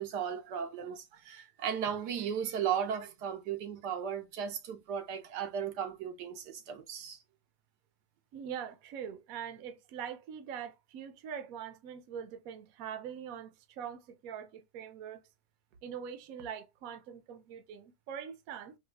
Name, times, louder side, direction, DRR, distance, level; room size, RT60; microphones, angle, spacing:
voice 1, 0.0-7.2, right 8 dB, 80° right, 1.3 m, -36 dB
voice 2, 8.3-15.2 15.8-18.8, right 8 dB, 65° right, 1.0 m, -43 dB
4.8 x 2.3 x 2.2 m
omnidirectional pair, 1.8 m